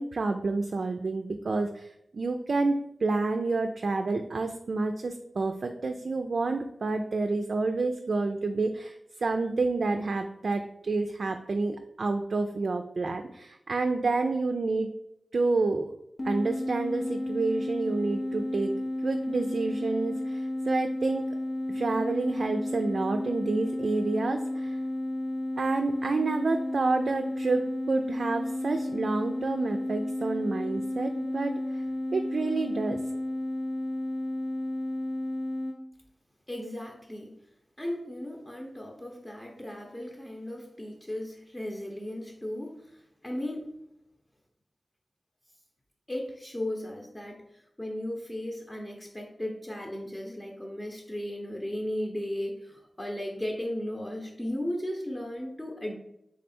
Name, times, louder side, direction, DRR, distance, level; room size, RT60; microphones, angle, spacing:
voice 1, 0.0-14.9 15.3-15.9 16.2-18.8 19.0-21.3 21.7-24.8 25.6-31.8 32.1-33.0, right 3 dB, 75° right, 5 dB, 0.3 m, -29 dB
sound 1, 16.2-35.8, left 1 dB, 65° left, 0.7 m, -32 dB
voice 2, 36.5-37.3 37.8-43.6 46.1-55.9, left 1 dB, 20° left, -1 dB, 0.8 m, -36 dB
3.7 x 3.2 x 4.3 m, 0.80 s
cardioid pair, 55°, 0 cm